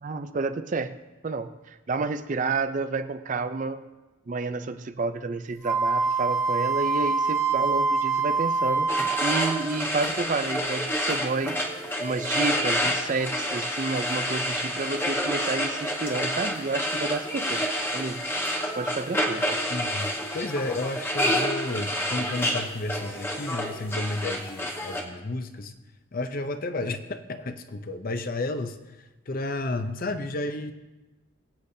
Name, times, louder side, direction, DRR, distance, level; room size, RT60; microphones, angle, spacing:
voice 1, 0.0-0.9 1.2-3.8 4.3-11.6 12.0-17.6 17.9-18.2 18.8-19.5, right 3 dB, 35° right, 11 dB, 0.4 m, -30 dB
Wind instrument woodwind instrument, 5.6-9.8, right 4 dB, 15° right, 0.9 m, -25 dB
sound 1, 8.9-25.0, equal, 10° left, 1.0 m, -28 dB
voice 2, 19.7-25.7 26.1-30.7, left 2 dB, 40° left, 9 dB, 0.6 m, -32 dB
22.0 x 8.3 x 2.7 m, 1.1 s
head